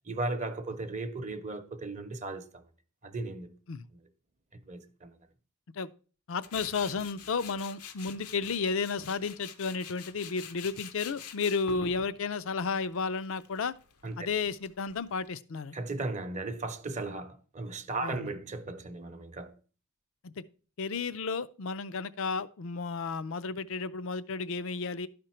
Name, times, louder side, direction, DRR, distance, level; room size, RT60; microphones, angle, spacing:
voice 1, 0.1-2.7 3.0-3.5 4.7-5.1 11.8-11.9 14.0-14.2 15.7-19.6, right 2 dB, 30° right, 0.7 m, -36 dB
voice 2, 6.3-13.7 14.2-15.7 18.0-18.3 20.2-20.4 20.8-25.1, left 4 dB, 60° left, 0.5 m, -33 dB
Tools, 6.4-15.3, left 7 dB, 85° left, 0.9 m, -47 dB
12.0 x 5.1 x 4.3 m
head